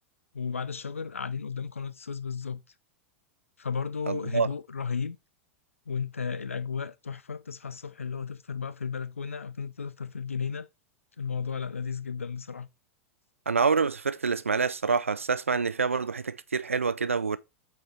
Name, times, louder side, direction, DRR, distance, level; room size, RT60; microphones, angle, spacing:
voice 1, 0.3-2.6 3.6-5.2 5.9-10.7 11.2-12.7, left 6 dB, 80° left, 0.5 m, -34 dB
voice 2, 4.1-4.5 13.5-17.4, right 5 dB, 80° right, 0.5 m, -27 dB
7.8 x 4.4 x 3.3 m
figure-of-eight pair, 90°, 7 cm